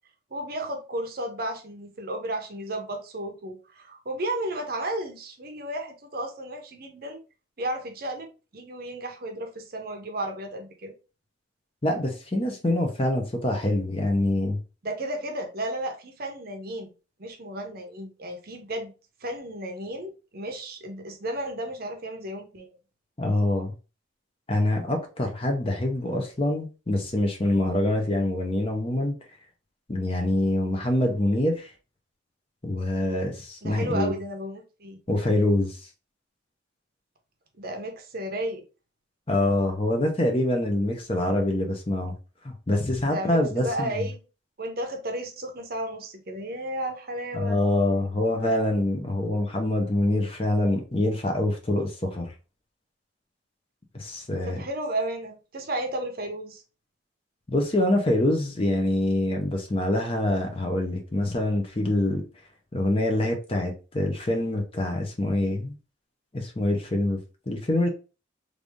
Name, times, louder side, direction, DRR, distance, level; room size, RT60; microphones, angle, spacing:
voice 1, 0.3-7.2 7.6-10.9 14.8-16.9 17.2-18.9 19.2-22.7 33.6-35.0 37.6-38.6 43.1-44.2 44.6-47.6 54.4-56.6, right 1 dB, 50° right, 0.7 m, -33 dB
voice 2, 11.8-14.6 23.2-23.7 24.5-29.1 29.9-31.7 32.6-34.1 35.1-35.8 39.3-42.1 42.4-43.9 47.3-52.3 53.9-54.6 57.5-62.2 62.7-65.8 66.3-67.2 67.5-67.9, left 1 dB, 30° left, 0.7 m, -25 dB
3.3 x 2.6 x 3.5 m
head